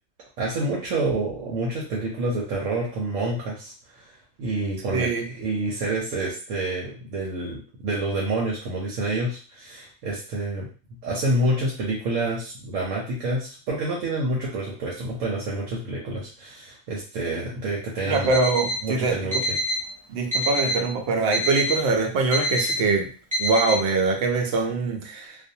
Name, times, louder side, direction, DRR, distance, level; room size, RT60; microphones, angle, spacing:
voice 1, 0.4-4.1 4.4-10.7 11.0-18.3 18.8-19.6, right 2 dB, 85° right, -5 dB, 1.0 m, -28 dB
voice 2, 4.9-5.2 18.1-19.2 20.1-23.1 23.4-25.4, right 3 dB, 65° right, 3 dB, 0.8 m, -23 dB
Alarm, 18.1-18.8 19.3-19.8 20.3-20.8 21.3-21.8 22.3-22.8 23.3-23.8, left 1 dB, 10° right, 0.4 m, -26 dB
2.6 x 2.0 x 2.6 m, 0.38 s
omnidirectional pair, 1.3 m